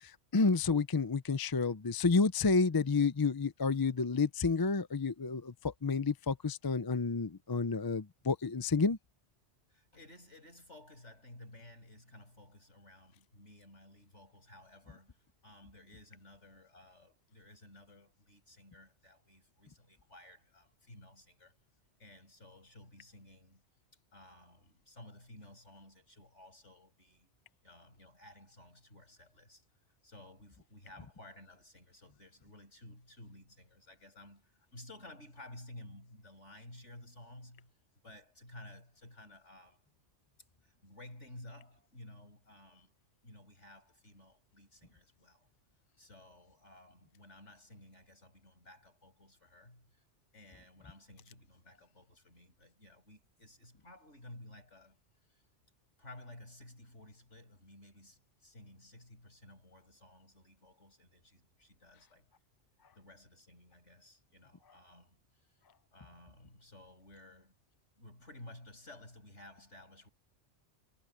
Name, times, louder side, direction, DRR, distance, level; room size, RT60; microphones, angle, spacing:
voice 1, 0.0-9.0, left 4 dB, 25° left, 0.5 m, -30 dB
voice 2, 9.7-21.6 22.0-23.6 23.9-27.3 27.6-29.6 30.0-37.7 38.0-39.9 40.6-42.9 43.2-45.5 46.0-50.0 50.3-55.0 55.3-55.4 56.0-62.3 62.9-65.6 65.9-67.6 68.0-70.1, left 1 dB, 75° left, 7.9 m, -55 dB
omnidirectional pair, 1.2 m